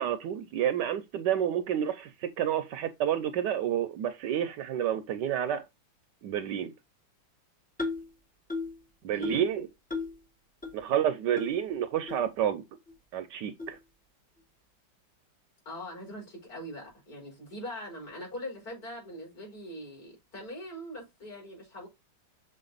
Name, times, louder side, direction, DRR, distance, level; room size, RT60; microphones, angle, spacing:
voice 1, 0.0-5.6 6.2-6.7 9.0-9.7 10.7-12.6 13.1-13.8, right 10 dB, 75° right, 1.1 m, -29 dB
sound 1, 7.8-8.1 8.5-8.8 9.2-9.5 9.9-10.2 10.6-10.7 11.4-11.5 12.1-12.2 12.9-13.0 13.6-13.8, left 3 dB, 10° left, 0.6 m, -34 dB
voice 2, 9.1-9.5 15.7-21.9, equal, 50° left, 4.3 m, -42 dB
6.6 x 4.0 x 3.9 m
omnidirectional pair, 2.1 m